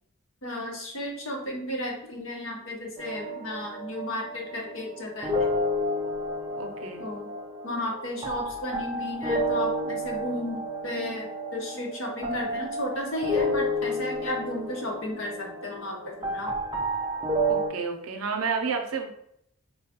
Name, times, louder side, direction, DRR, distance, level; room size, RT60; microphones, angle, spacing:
voice 1, 0.4-5.5 7.0-7.3 7.6-16.5, left 1 dB, 65° left, 0 dB, 0.8 m, -34 dB
sound 1, 3.0-17.7, equal, 20° right, 0.4 m, -31 dB
voice 2, 6.5-7.0 17.5-19.1, right 5 dB, 85° right, 4 dB, 0.5 m, -30 dB
4.2 x 2.2 x 2.8 m, 0.73 s
head